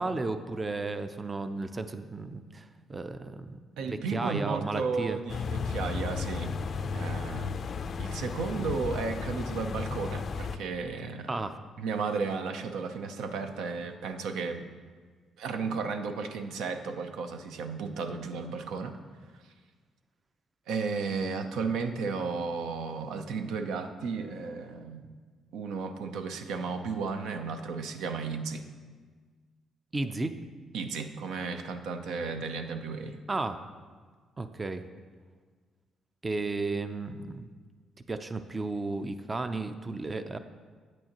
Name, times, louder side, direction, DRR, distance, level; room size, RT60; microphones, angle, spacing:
voice 1, 0.0-5.2 11.3-11.6 29.9-30.4 33.3-33.6 34.4-34.9 36.2-37.5 38.1-40.4, right 3 dB, 25° right, 10 dB, 0.4 m, -34 dB
voice 2, 3.8-6.5 6.9-7.6 8.0-11.3 11.8-14.7 15.4-19.0 19.3-19.4 20.7-25.1 25.5-28.7 30.7-33.2, right 4 dB, 85° right, 7 dB, 0.6 m, -34 dB
sound 1, 5.3-10.6, left 5 dB, 50° left, 0.4 m, -34 dB
9.0 x 8.6 x 2.9 m, 1.5 s
cardioid pair, 90°, 0 cm